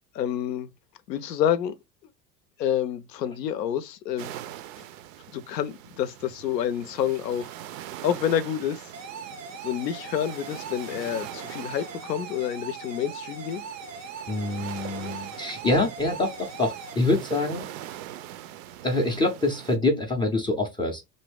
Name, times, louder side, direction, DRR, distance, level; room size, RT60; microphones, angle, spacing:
voice 1, 0.1-0.7 1.1-1.7 2.6-4.4 5.3-7.5 8.0-8.9 9.6-13.6, left 9 dB, 80° left, 0.6 m, -28 dB
sound 1, 4.2-19.8, right 12 dB, 55° right, 0.5 m, -42 dB
sound 2, 8.9-16.9, right 5 dB, 85° right, 0.8 m, -40 dB
voice 2, 14.3-17.7 18.8-21.0, left 2 dB, 10° left, 0.3 m, -25 dB
2.6 x 2.6 x 3.2 m
hypercardioid pair, 80°, 49 cm